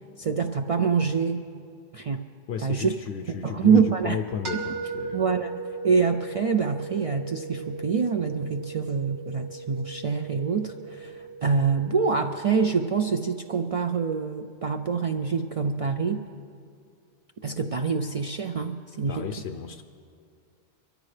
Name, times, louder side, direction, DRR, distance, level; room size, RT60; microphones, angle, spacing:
voice 1, 0.2-1.4 1.9-2.2 2.6-2.9 3.4-4.2 5.1-16.2 17.4-19.3, right 5 dB, 50° right, 5 dB, 0.4 m, -25 dB
voice 2, 2.5-5.3 19.1-19.8, left 7 dB, 85° left, 6 dB, 0.9 m, -33 dB
sound 1, 4.4-14.3, right 4 dB, 75° right, 1.8 m, -38 dB
23.5 x 14.0 x 3.3 m, 2.3 s
omnidirectional pair, 1.1 m